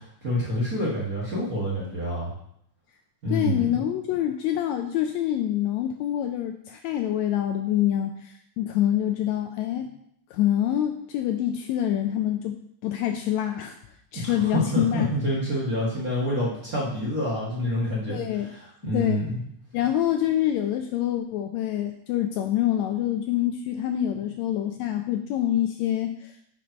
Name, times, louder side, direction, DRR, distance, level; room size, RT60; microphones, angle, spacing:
voice 1, 0.0-2.3 3.2-3.7 14.1-18.2 18.5-19.3, equal, 40° right, -7 dB, 1.4 m, -27 dB
voice 2, 3.3-9.9 10.3-13.8 14.1-15.1 18.1-18.5 18.9-19.2 19.7-26.3, left 11 dB, 80° left, 5 dB, 1.7 m, -26 dB
6.0 x 5.3 x 5.0 m, 0.70 s
omnidirectional pair, 3.5 m